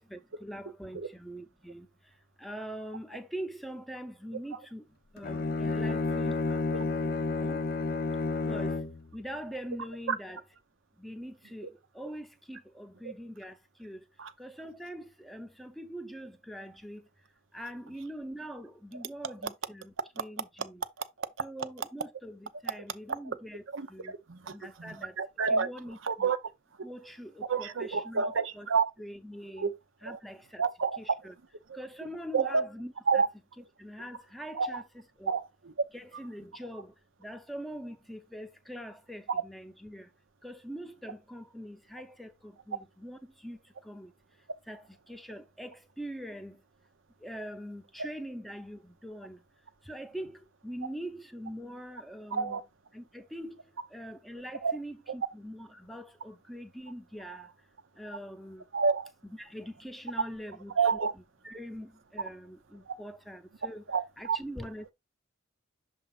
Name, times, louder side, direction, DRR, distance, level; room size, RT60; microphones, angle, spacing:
voice 1, 0.0-1.9 2.4-4.8 5.1-6.6 7.0-7.6 8.4-8.8 9.1-10.4 11.0-14.0 14.4-17.1 17.5-20.8 21.4-23.6 23.9-24.1 24.5-25.2 25.5-26.3 26.8-28.7 29.0-29.7 30.0-30.6 31.0-31.3 31.7-33.2 33.8-34.8 35.2-35.3 35.9-36.9 37.2-40.1 40.4-44.1 44.7-46.6 47.2-49.4 49.8-52.6 52.9-53.6 53.9-57.5 58.0-58.6 59.2-60.8 61.4-63.8 64.2-64.9, equal, ahead, 0.7 m, -43 dB
Bowed string instrument, 5.2-9.0, left 3 dB, 45° left, 0.5 m, -30 dB
voice 2, 23.7-25.7 26.0-26.4 27.4-28.9 29.5-29.7 30.0-30.2 30.6-31.0 31.7-31.8 32.3-32.6 33.1-33.3 34.5-34.8 35.3-35.7 39.3-39.4 48.0-48.1 52.3-52.6 54.6-54.8 58.7-59.1 60.8-61.1 62.9-63.0 63.9-64.4, right 5 dB, 80° right, 0.7 m, -29 dB
6.7 x 2.5 x 5.5 m
head